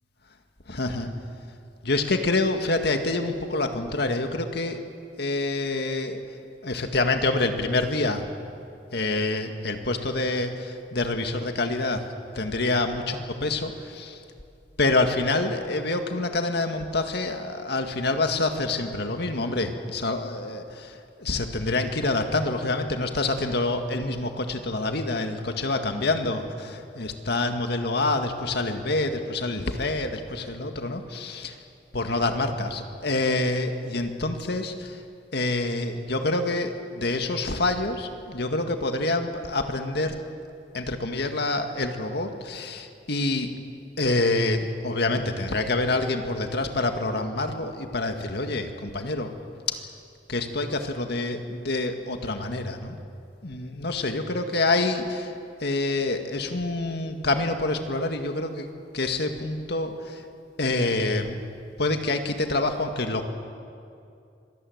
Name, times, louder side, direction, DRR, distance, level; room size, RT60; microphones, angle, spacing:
voice 1, 0.7-1.1 1.8-4.8 5.2-6.2 6.6-8.2 8.9-12.1 12.4-14.2 14.8-31.6 31.9-35.0 35.3-40.2 40.7-43.5 44.0-49.3 49.7-49.8 50.3-53.0 53.4-55.3 55.6-58.7 58.9-60.2 60.6-61.4 61.8-63.2, left 2 dB, 65° left, 6 dB, 2.0 m, -27 dB
25.5 x 19.0 x 8.0 m, 2.5 s
head